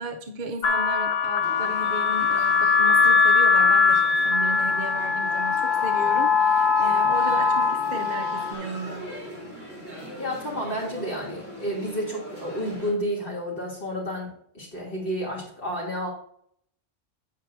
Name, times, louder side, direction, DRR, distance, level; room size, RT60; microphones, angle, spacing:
voice 1, 0.0-9.1, right 3 dB, 50° right, 2 dB, 0.7 m, -35 dB
sound 1, 0.6-8.5, left 5 dB, 70° left, 1.0 m, -21 dB
sound 2, 1.4-12.9, equal, 10° left, 3.3 m, -41 dB
voice 2, 10.2-16.1, equal, 55° left, -5 dB, 2.9 m, -31 dB
8.9 x 8.2 x 2.6 m, 0.66 s
omnidirectional pair, 1.1 m